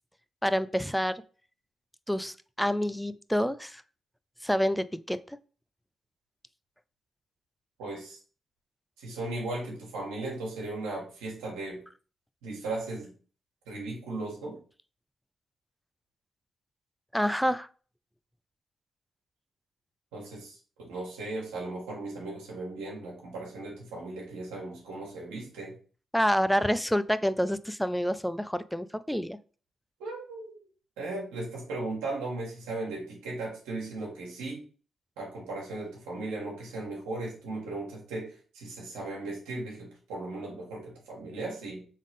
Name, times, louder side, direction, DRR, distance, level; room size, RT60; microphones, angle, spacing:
voice 1, 0.4-1.2 2.1-3.8 4.4-5.4 17.1-17.7 26.1-29.4, equal, 5° left, 14 dB, 0.4 m, -28 dB
voice 2, 7.8-8.2 9.0-11.8 12.4-13.1 13.7-14.6 20.1-25.7 30.0-30.6 31.0-34.6 35.2-41.8, right 2 dB, 90° right, -3 dB, 1.6 m, -37 dB
3.7 x 3.6 x 3.5 m, 0.39 s
hypercardioid pair, 45°, 0 cm